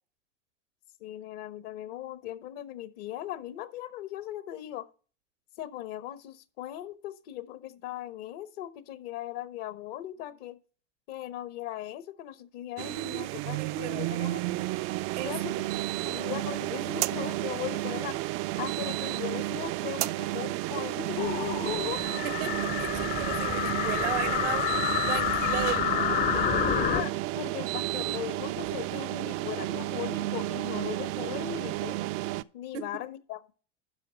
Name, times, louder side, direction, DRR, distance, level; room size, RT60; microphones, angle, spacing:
voice 1, 1.0-4.9 5.6-10.6 11.1-14.5 15.2-15.7 16.0-18.2 18.6-22.0 26.6-32.0 32.5-33.5, left 12 dB, 55° left, 1.0 m, -38 dB
sound 1, 12.8-32.4, right 17 dB, 40° right, 0.4 m, -32 dB
voice 2, 13.6-14.1 15.2-15.3 22.2-26.8 32.7-32.8, right 12 dB, 70° right, 0.9 m, -36 dB
sound 2, 21.2-27.0, left 9 dB, 25° left, 0.5 m, -29 dB
12.0 x 4.8 x 5.1 m
hypercardioid pair, 90°, 36 cm